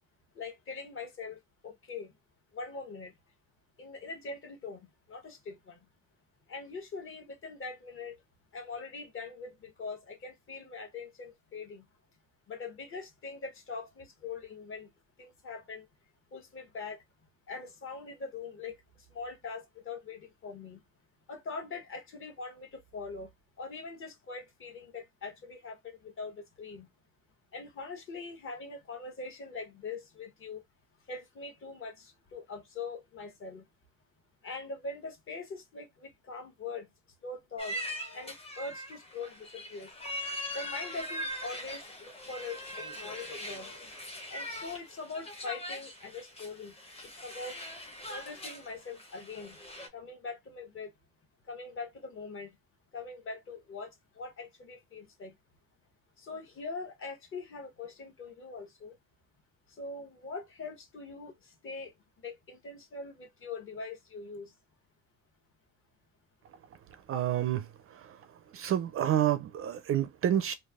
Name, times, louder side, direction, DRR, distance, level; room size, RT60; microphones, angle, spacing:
voice 1, 0.3-2.1 2.5-3.2 3.8-5.9 6.5-8.2 8.5-11.9 12.5-14.9 15.2-15.9 16.3-17.0 17.5-18.8 19.1-20.8 21.3-26.9 27.5-30.6 31.1-33.7 34.4-36.9 37.2-39.9 40.5-43.7 44.3-47.6 48.1-49.6 49.9-50.9 51.4-52.6 52.9-55.3 56.2-59.0 59.7-64.5, left 4 dB, 40° left, 1.1 m, -42 dB
sound 1, 37.6-49.9, left 1 dB, 20° left, 0.7 m, -41 dB
voice 2, 67.1-68.2 68.5-70.5, right 11 dB, 45° right, 0.4 m, -29 dB
3.2 x 2.4 x 2.3 m
cardioid pair, 145°, 33 cm